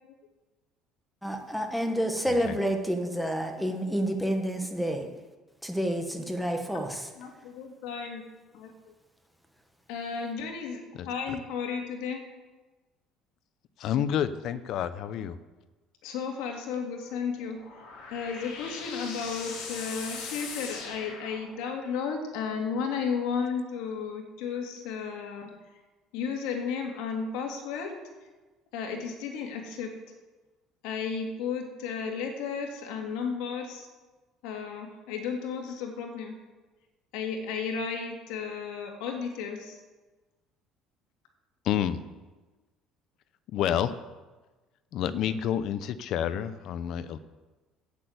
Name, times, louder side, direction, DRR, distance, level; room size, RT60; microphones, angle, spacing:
voice 1, 1.2-5.1 5.6-7.1, equal, ahead, 4 dB, 1.3 m, -29 dB
voice 2, 7.2-8.2 8.5-8.7 9.9-12.2 16.0-17.6 18.1-25.5 26.1-28.0 28.7-29.9 30.8-33.9 34.4-36.3 37.1-39.8, left 6 dB, 90° left, 2 dB, 2.3 m, -33 dB
voice 3, 13.8-15.3 41.6-42.0 43.5-43.9 44.9-47.2, left 10 dB, 55° left, 13 dB, 0.6 m, -29 dB
sound 1, 17.3-21.9, left 5 dB, 70° left, 3.2 m, -40 dB
8.9 x 8.3 x 7.9 m, 1.2 s
cardioid pair, 150°, 0 cm